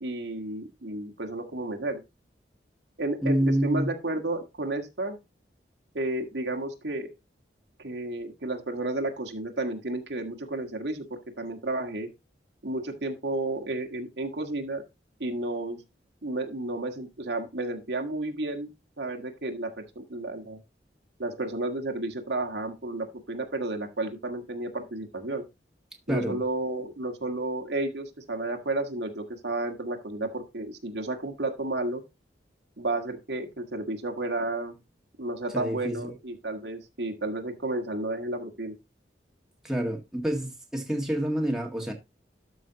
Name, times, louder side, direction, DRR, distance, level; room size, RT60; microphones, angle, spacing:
voice 1, 0.0-2.0 3.0-5.2 5.9-7.1 7.8-12.1 12.6-14.8 15.2-15.8 16.2-18.7 19.0-20.6 21.2-25.4 26.1-32.0 32.8-34.8 35.2-38.8, right 2 dB, 80° right, 1.7 m, -32 dB
voice 2, 3.2-3.9 26.1-26.4 35.5-36.1 39.6-41.9, right 1 dB, 5° right, 1.8 m, -27 dB
12.5 x 5.6 x 2.9 m
head